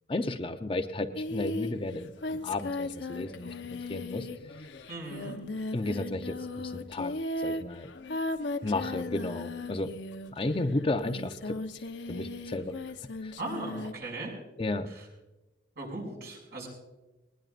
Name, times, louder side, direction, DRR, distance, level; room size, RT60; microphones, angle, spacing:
voice 1, 0.1-4.3 5.7-7.1 7.4-7.9 8.6-9.9 10.3-11.6 12.1-12.7 13.2-13.3 14.6-14.9, left 2 dB, 30° left, 6 dB, 0.7 m, -33 dB
Singing, 1.1-10.5 11.0-13.9, left 2 dB, 75° left, 0.9 m, -37 dB
voice 2, 4.9-5.3 13.4-14.3 14.9-15.1 15.8-16.7, right 2 dB, 60° right, 0 dB, 6.0 m, -38 dB
20.5 x 20.0 x 2.5 m, 1.1 s
head